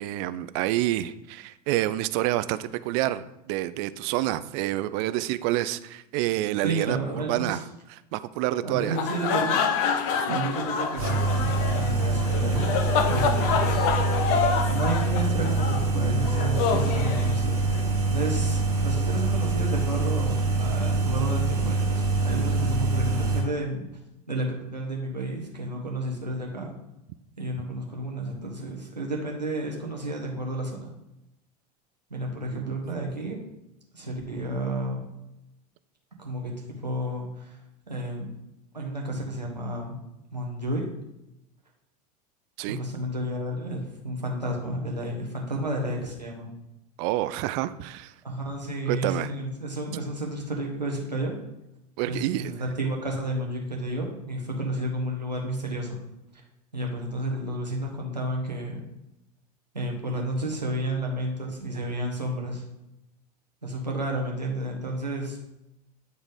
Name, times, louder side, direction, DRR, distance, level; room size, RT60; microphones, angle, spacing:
voice 1, 0.0-7.6 8.1-9.0 10.3-10.4 11.0-11.1 32.5-32.8 42.6-42.8 47.0-48.1 48.9-49.3 52.0-52.5, right 15 dB, 45° right, 14 dB, 0.4 m, -28 dB
voice 2, 6.6-7.6 8.6-9.6 10.3-12.7 13.1-13.7 14.1-14.2 14.7-17.6 18.1-23.8 24.3-26.7 27.4-30.9 32.1-33.4 33.9-35.0 36.2-37.6 37.9-38.3 38.7-40.0 40.3-40.8 42.7-46.5 48.2-51.4 52.1-56.0 56.3-56.4 56.7-58.8 59.7-62.6 63.6-65.4, right 1 dB, 90° right, 0 dB, 1.4 m, -31 dB
sound 1, 8.8-17.8, left 6 dB, 45° left, 0.8 m, -27 dB
sound 2, 11.0-23.4, right 3 dB, 65° right, 2.1 m, -25 dB
9.4 x 3.9 x 3.7 m, 0.89 s
figure-of-eight pair, 80°, 21 cm